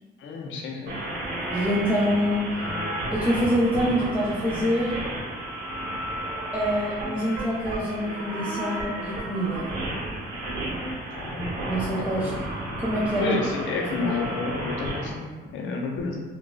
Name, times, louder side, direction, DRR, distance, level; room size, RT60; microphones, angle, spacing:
voice 1, 0.2-0.9 11.1-11.5 11.9-12.4 13.2-16.2, left 4 dB, 75° left, 1 dB, 0.6 m, -30 dB
sound 1, 0.9-15.1, right 1 dB, 70° right, 1.0 m, -32 dB
voice 2, 1.5-2.5 3.1-4.9 6.5-9.7 11.7-12.3 12.8-13.4 14.0-14.1, equal, 5° right, -7 dB, 0.5 m, -25 dB
3.8 x 2.3 x 2.2 m, 1.4 s
cardioid pair, 90°, 20 cm